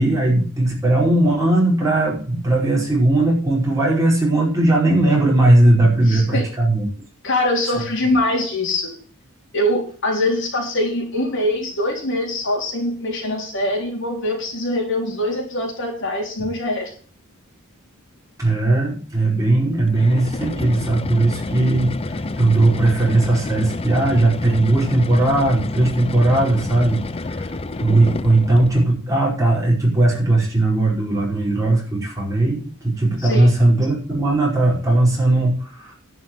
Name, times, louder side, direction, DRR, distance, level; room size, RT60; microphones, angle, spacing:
voice 1, 0.0-6.9 18.4-27.0 27.3-27.5 27.8-35.9, right 2 dB, 15° right, -3 dB, 5.0 m, -18 dB
voice 2, 6.1-6.4 7.2-8.9 9.5-16.9 33.2-33.5, left 1 dB, 55° left, 1 dB, 3.8 m, -23 dB
sound 1, 19.9-29.0, left 2 dB, 25° left, 0.6 m, -29 dB
11.0 x 6.3 x 7.9 m, 0.41 s
head